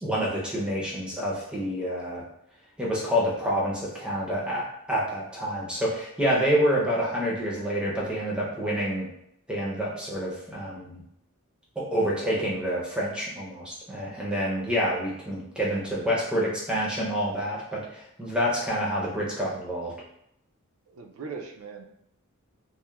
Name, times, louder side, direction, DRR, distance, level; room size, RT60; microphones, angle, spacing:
voice 1, 0.0-2.2 2.8-9.1 9.5-11.0 11.8-19.9, equal, 5° right, -5 dB, 0.5 m, -28 dB
voice 2, 20.9-21.8, right 5 dB, 65° right, 4 dB, 0.3 m, -40 dB
2.9 x 2.0 x 2.2 m, 0.76 s
head